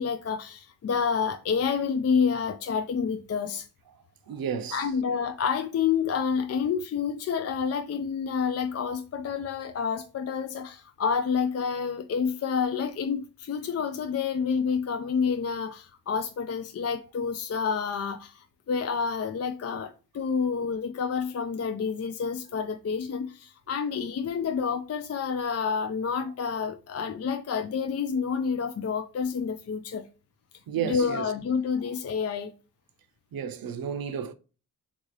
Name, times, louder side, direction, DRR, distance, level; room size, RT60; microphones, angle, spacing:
voice 1, 0.0-3.6 4.7-30.1 30.8-32.5, left 6 dB, 40° left, 0.5 m, -29 dB
voice 2, 4.3-4.9 30.7-31.3 33.3-34.3, right 8 dB, 60° right, 0.6 m, -32 dB
3.6 x 2.5 x 3.1 m
supercardioid pair, 50°, 41 cm